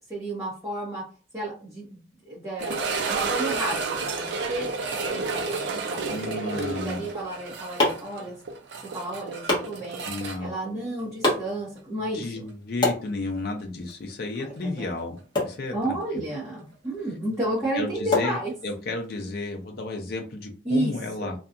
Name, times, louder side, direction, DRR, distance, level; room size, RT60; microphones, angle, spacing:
voice 1, 0.1-1.0 1.3-2.0 2.2-2.8 3.1-4.7 5.0-8.3 8.8-12.5 14.4-14.9 15.7-18.5 20.6-20.9 21.2-21.3, right 1 dB, 15° right, -9 dB, 0.9 m, -32 dB
sound 1, 2.6-11.5 11.8-11.9 12.5-12.6 15.2-15.3, right 4 dB, 65° right, 0.4 m, -31 dB
voice 2, 6.1-7.1 10.1-10.5 12.1-15.2 15.4-16.0 17.7-18.4 18.6-21.3, left 2 dB, 55° left, 3 dB, 0.4 m, -32 dB
sound 2, 7.1-19.1, left 2 dB, 25° left, 0.8 m, -32 dB
2.7 x 2.3 x 2.4 m, 0.37 s
head